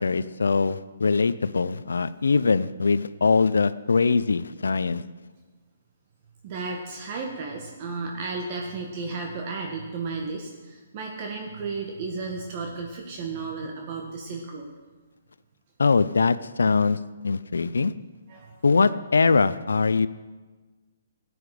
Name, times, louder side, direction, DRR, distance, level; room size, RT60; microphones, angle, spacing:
voice 1, 0.0-5.0 15.8-17.0 17.2-17.9 18.6-20.1, left 4 dB, 75° left, 16 dB, 0.5 m, -22 dB
voice 2, 6.4-14.7 18.3-18.6, right 4 dB, 40° right, 1 dB, 1.7 m, -34 dB
14.5 x 9.7 x 5.0 m, 1.3 s
figure-of-eight pair, 135°, 0 cm